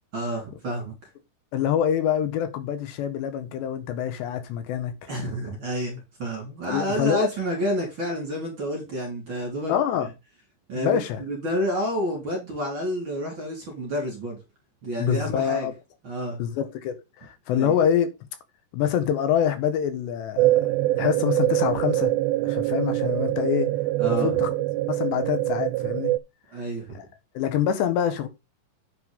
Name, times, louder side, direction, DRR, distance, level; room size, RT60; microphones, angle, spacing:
voice 1, 0.1-0.9 5.1-9.7 10.7-14.4 14.8-15.7 16.0-16.4 17.5-17.7 24.0-24.4 26.5-27.0, equal, 30° right, 4.0 m, -29 dB
voice 2, 1.5-5.1 6.7-7.3 9.7-10.1 10.8-11.2 15.0-15.7 16.4-18.1 18.7-20.6 20.9-22.2 22.4-23.7 24.0-24.5 24.9-26.2 27.0-27.1 27.4-28.3, left 9 dB, 80° left, 3.7 m, -25 dB
sound 1, 20.4-26.2, right 16 dB, 85° right, 2.8 m, -24 dB
9.3 x 5.9 x 5.4 m
omnidirectional pair, 4.9 m